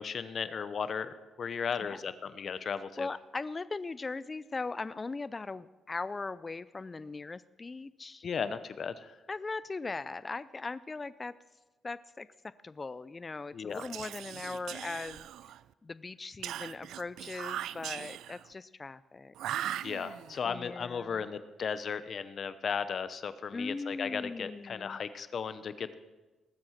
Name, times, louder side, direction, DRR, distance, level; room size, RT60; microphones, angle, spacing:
voice 1, 0.0-3.1 8.2-9.2 13.5-13.8 19.8-26.0, left 6 dB, 50° left, 13 dB, 0.9 m, -36 dB
voice 2, 3.0-8.3 9.3-11.3 11.8-15.3 15.8-19.3 20.5-21.3 23.5-25.0, left 3 dB, 25° left, 16 dB, 0.4 m, -39 dB
Whispering, 13.7-15.7 16.4-18.5 19.3-20.4, right 12 dB, 80° right, 0.4 m, -39 dB
19.5 x 7.8 x 5.8 m, 1.2 s
cardioid pair, 90°, 0 cm